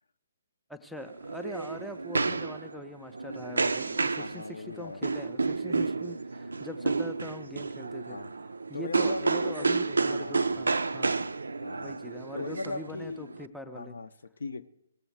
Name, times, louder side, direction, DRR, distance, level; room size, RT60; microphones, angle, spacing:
voice 1, 0.7-8.2 8.7-11.3 11.7-13.9, equal, ahead, 5 dB, 0.5 m, -43 dB
sound 1, 1.0-13.4, right 4 dB, 70° right, 0.4 m, -31 dB
voice 2, 4.1-5.0 8.1-8.3 8.7-10.7 11.6-12.0 12.3-13.4 13.7-14.7, left 3 dB, 65° left, 11 dB, 0.6 m, -39 dB
17.5 x 7.0 x 4.6 m, 0.78 s
figure-of-eight pair, 130°, 0 cm